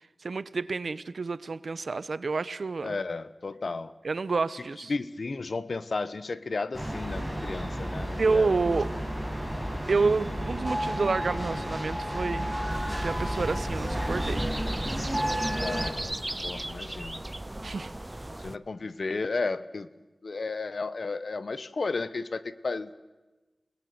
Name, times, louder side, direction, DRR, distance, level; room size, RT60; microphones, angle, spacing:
voice 1, 0.2-3.0 4.0-4.9 8.2-8.9 9.9-12.5 13.0-14.5 17.6-17.9, right 4 dB, 70° right, 16 dB, 1.0 m, -29 dB
voice 2, 2.8-3.9 4.9-8.6 15.6-16.0 16.4-17.2 18.4-19.9 20.2-22.9, left 3 dB, 65° left, 15 dB, 1.2 m, -33 dB
sound 1, 6.7-15.9, equal, 5° left, 5.6 m, -32 dB
sound 2, 12.7-18.6, right 1 dB, 20° right, 0.8 m, -36 dB
28.0 x 19.5 x 9.5 m, 1.2 s
wide cardioid pair, 70°, 0 cm